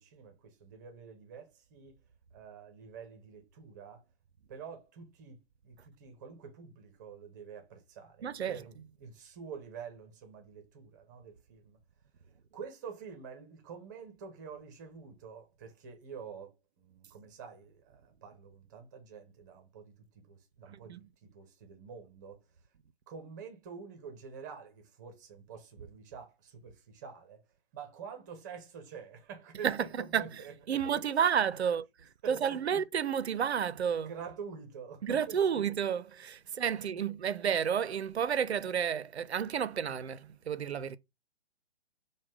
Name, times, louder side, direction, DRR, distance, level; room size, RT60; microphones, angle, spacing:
voice 1, 0.0-2.0 2.3-4.0 4.5-11.8 12.5-22.4 23.1-27.4 27.7-31.0 31.3-31.4 32.2-32.8 34.0-35.6 36.4-36.6, right 6 dB, 15° right, 0.6 m, -47 dB
voice 2, 8.2-8.6 20.9-21.0 29.6-30.3 30.7-31.8 32.3-34.1 35.0-41.0, right 8 dB, 75° right, 0.5 m, -31 dB
5.0 x 2.1 x 3.4 m
figure-of-eight pair, 130°, 33 cm